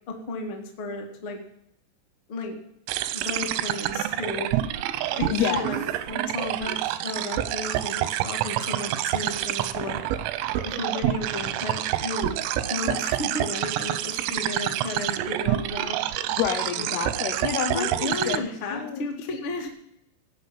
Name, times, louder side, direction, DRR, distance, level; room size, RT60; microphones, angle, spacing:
voice 1, 0.1-1.4 2.3-2.6 3.1-4.5 5.2-10.0 10.6-12.4 12.7-16.0 16.7-17.0 17.7-19.7, left 3 dB, 50° left, 2 dB, 1.6 m, -33 dB
sound 1, 2.9-18.4, right 13 dB, 90° right, 3.5 m, -28 dB
voice 2, 4.9-5.7 16.3-19.1, left 8 dB, 75° left, 4 dB, 2.4 m, -29 dB
17.5 x 6.1 x 7.5 m, 0.75 s
omnidirectional pair, 5.7 m